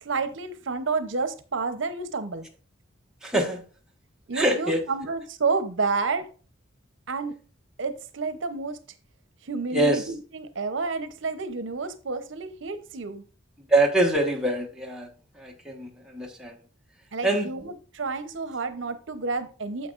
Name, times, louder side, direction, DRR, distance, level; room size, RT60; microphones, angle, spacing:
voice 1, 0.0-2.5 4.3-6.3 7.1-7.4 7.8-8.8 9.4-13.2 17.1-19.9, right 4 dB, 70° right, 10 dB, 0.7 m, -30 dB
voice 2, 3.2-3.6 4.3-4.8 9.7-10.1 13.7-15.1 15.3-16.6 17.2-17.5, right 1 dB, 5° right, 0 dB, 1.2 m, -24 dB
9.3 x 7.5 x 2.5 m, 0.36 s
head